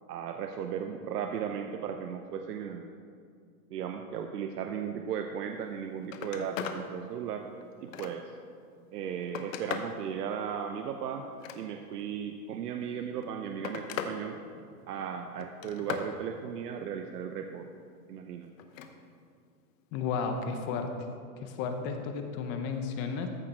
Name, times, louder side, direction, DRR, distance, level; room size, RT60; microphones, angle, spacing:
voice 1, 0.1-2.9 3.7-7.4 7.8-8.2 8.9-11.2 11.5-14.4 14.9-17.7 18.1-18.5, right 8 dB, 80° right, 5 dB, 0.8 m, -36 dB
Telephone, 5.6-5.7 6.0-6.8 7.3-8.4 9.0-10.0 11.2-12.0 13.0-14.2 14.5-15.0 15.4-16.1 18.6-18.9 20.3-20.5, left 8 dB, 55° left, 1.0 m, -39 dB
voice 2, 19.9-20.9 21.4-23.3, left 5 dB, 25° left, 6 dB, 0.6 m, -33 dB
14.0 x 6.4 x 4.4 m, 2.3 s
supercardioid pair, 150°, 47 cm